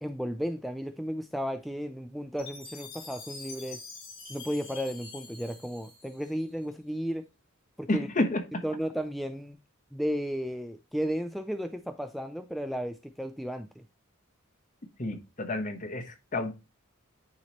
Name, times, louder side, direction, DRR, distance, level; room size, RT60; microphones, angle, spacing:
voice 1, 0.0-3.8 4.3-7.2 7.8-8.1 8.6-9.6 9.9-13.8, equal, ahead, 0.4 m, -34 dB
Chime, 2.4-6.6, left 4 dB, 65° left, 4.7 m, -46 dB
voice 2, 7.9-8.6 15.0-16.5, left 2 dB, 40° left, 1.2 m, -30 dB
9.5 x 3.2 x 4.2 m
head